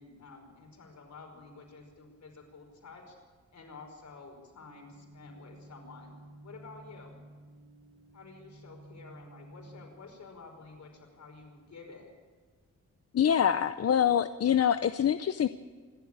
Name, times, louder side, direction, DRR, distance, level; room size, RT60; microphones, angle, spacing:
voice 1, 0.0-3.2 3.5-6.1 6.4-7.2 8.1-12.1, left 4 dB, 70° left, 2 dB, 5.3 m, -50 dB
sound 1, 4.6-9.9, right 1 dB, 85° right, 3.6 m, -52 dB
voice 2, 13.1-15.5, left 9 dB, 55° left, 11 dB, 0.6 m, -25 dB
26.5 x 12.0 x 8.7 m, 1.5 s
wide cardioid pair, 130°, 29 cm